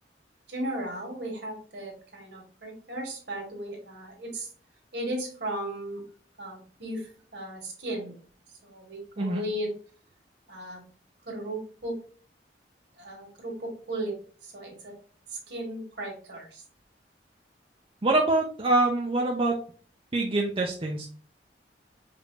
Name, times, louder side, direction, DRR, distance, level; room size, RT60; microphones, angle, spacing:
voice 1, 0.5-4.5 4.9-6.0 6.4-8.1 8.6-9.7 10.5-10.8 11.3-12.0 13.0-14.2 14.4-14.9 15.5-16.6, right 1 dB, 65° right, 1 dB, 1.8 m, -36 dB
voice 2, 18.0-19.5 20.1-21.1, right 2 dB, 30° right, 0 dB, 0.6 m, -25 dB
5.0 x 2.7 x 3.2 m, 0.41 s
head